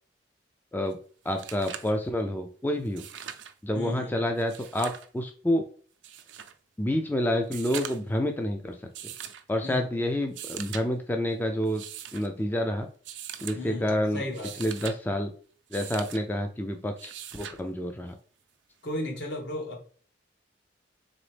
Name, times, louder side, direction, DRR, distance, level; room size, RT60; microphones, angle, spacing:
sound 1, 0.9-1.0 1.3-2.0 2.9-3.5 4.4-5.1 6.0-6.5 7.4-8.2 8.9-9.4 10.2-10.8 11.6-12.3 13.0-13.6 14.2-15.0 15.7-16.2 17.0-17.6 19.0-19.1, right 9 dB, 85° right, 0.5 m, -41 dB
voice 1, 1.2-3.0 3.6-5.6 6.8-8.8 9.5-11.8 12.1-12.9 13.4-14.2 14.6-15.3 15.7-18.1, left 1 dB, 10° left, 4 dB, 0.4 m, -28 dB
voice 2, 3.7-4.1 9.6-9.9 13.5-14.7 18.8-19.8, left 1 dB, 70° left, 0 dB, 1.5 m, -35 dB
3.9 x 3.4 x 3.3 m, 0.43 s
head